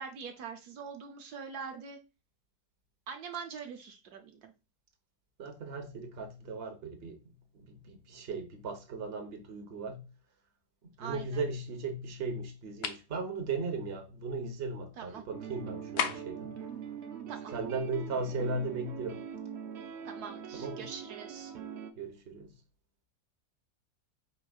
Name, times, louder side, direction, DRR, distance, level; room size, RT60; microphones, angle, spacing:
voice 1, 0.0-2.0 3.1-4.5 11.0-11.4 15.0-15.2 17.3-17.5 20.0-21.5, right 6 dB, 75° right, 1.2 m, -43 dB
voice 2, 5.4-7.2 7.5-10.0 11.0-16.5 17.5-19.2 20.5-20.8 22.0-22.5, right 3 dB, 45° right, 1.1 m, -37 dB
sound 1, 12.8-13.1 16.0-16.4, left 7 dB, 70° left, 0.5 m, -33 dB
sound 2, 15.3-21.9, right 7 dB, 60° right, 0.7 m, -43 dB
4.7 x 4.5 x 2.3 m
omnidirectional pair, 1.7 m